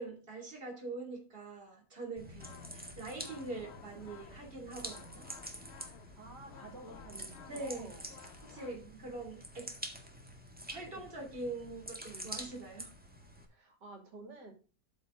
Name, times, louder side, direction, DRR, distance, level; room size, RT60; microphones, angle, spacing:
voice 1, 0.0-5.3 7.5-7.9 8.4-9.7 10.7-12.9, right 2 dB, 30° right, 2 dB, 3.1 m, -43 dB
sound 1, 2.2-13.4, equal, 5° right, 1.7 m, -48 dB
sound 2, 2.4-8.8, left 7 dB, 55° left, 0.8 m, -55 dB
voice 2, 6.1-8.1 8.7-9.1 10.9-11.0 12.1-12.3 13.4-14.5, right 2 dB, 80° right, 2 dB, 3.3 m, -52 dB
13.0 x 5.2 x 3.7 m, 0.36 s
omnidirectional pair, 1.8 m